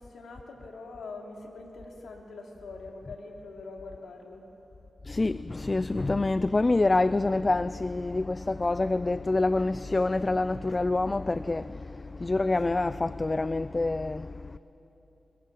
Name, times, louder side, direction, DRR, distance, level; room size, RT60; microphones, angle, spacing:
voice 1, 0.0-4.4, left 3 dB, 90° left, 3.3 m, -43 dB
voice 2, 5.0-14.6, left 2 dB, 35° left, 0.5 m, -27 dB
28.5 x 21.5 x 7.7 m
cardioid pair, 55°, 0 cm